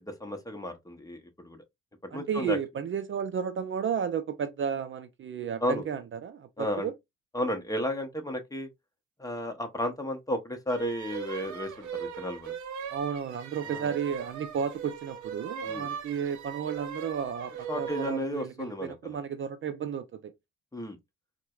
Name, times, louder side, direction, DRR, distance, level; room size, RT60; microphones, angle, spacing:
voice 1, 0.1-1.6 2.1-2.6 5.6-5.8 6.6-6.9 7.3-8.7 9.2-12.5 13.7-13.9 15.6-15.9 17.7-19.2 20.7-21.0, left 1 dB, 10° left, 0.8 m, -33 dB
voice 2, 2.1-6.9 12.9-20.3, right 7 dB, 40° right, 0.4 m, -33 dB
sound 1, 10.7-18.2, right 8 dB, 70° right, 0.8 m, -39 dB
4.4 x 2.2 x 2.3 m
cardioid pair, 90°, 30 cm